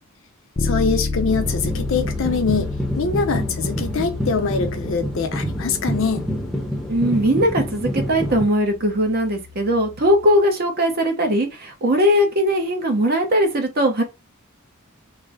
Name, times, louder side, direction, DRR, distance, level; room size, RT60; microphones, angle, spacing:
voice 1, 0.6-6.2, left 4 dB, 65° left, 0.7 m, -23 dB
Bass guitar, 0.6-10.4, left 3 dB, 30° left, 0.4 m, -31 dB
sound 1, 1.3-8.4, equal, ahead, 0.7 m, -27 dB
voice 2, 6.9-14.0, equal, 45° right, 0.8 m, -19 dB
3.1 x 2.1 x 3.7 m
head